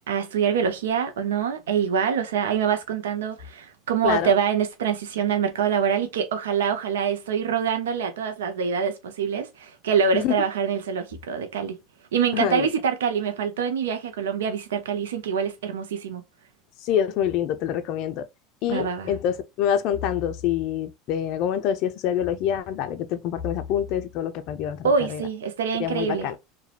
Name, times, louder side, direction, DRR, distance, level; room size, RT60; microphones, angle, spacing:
voice 1, 0.1-11.8 12.1-16.2 18.7-19.1 24.8-26.3, right 7 dB, 90° right, 0.4 m, -25 dB
voice 2, 12.3-12.7 16.8-18.2 18.6-25.2 25.8-26.4, left 9 dB, 60° left, 0.4 m, -26 dB
2.4 x 2.1 x 2.8 m
hypercardioid pair, 95°, 0 cm